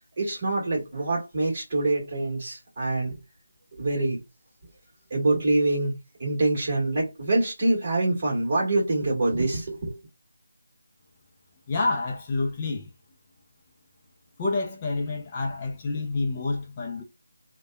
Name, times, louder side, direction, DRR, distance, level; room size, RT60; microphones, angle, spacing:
voice 1, 0.0-3.2 3.7-4.2 5.1-10.0, right 2 dB, 30° right, 1.4 m, -25 dB
voice 2, 11.7-12.9 14.4-17.0, left 3 dB, 20° left, 0.4 m, -28 dB
2.7 x 2.1 x 2.2 m
figure-of-eight pair, 175°, 0 cm